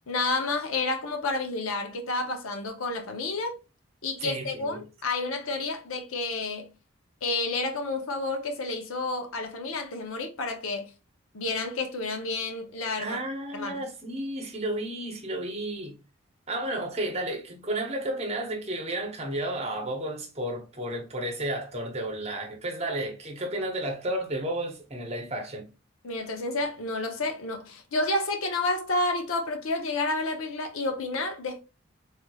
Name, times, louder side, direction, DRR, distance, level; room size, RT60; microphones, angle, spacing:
voice 1, 0.1-3.6 4.0-6.7 7.2-10.9 11.3-13.2 13.5-13.8 26.0-31.6, left 2 dB, 85° left, 0.7 m, -30 dB
voice 2, 4.2-4.8 13.0-16.0 16.5-25.7, right 1 dB, 30° right, 0.8 m, -32 dB
3.3 x 3.0 x 2.3 m
head